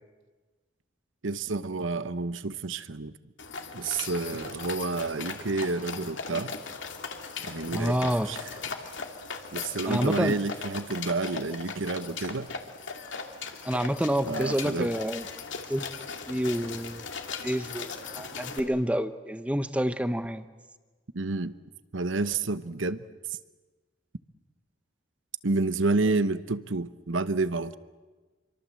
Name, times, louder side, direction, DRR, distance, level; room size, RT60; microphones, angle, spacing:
voice 1, 1.2-3.1 3.7-6.5 7.4-8.4 9.5-12.5 14.3-14.9 21.1-21.6 21.9-23.0 23.3-23.4 25.4-27.8, right 3 dB, 70° right, 13 dB, 1.0 m, -29 dB
sound 1, 3.4-18.6, left 5 dB, 65° left, 2.4 m, -38 dB
voice 2, 7.7-8.3 9.9-10.3 13.6-15.3 15.7-15.9 16.3-17.1 17.4-20.4, equal, 5° right, 11 dB, 0.9 m, -28 dB
26.5 x 24.5 x 7.7 m, 1.3 s
head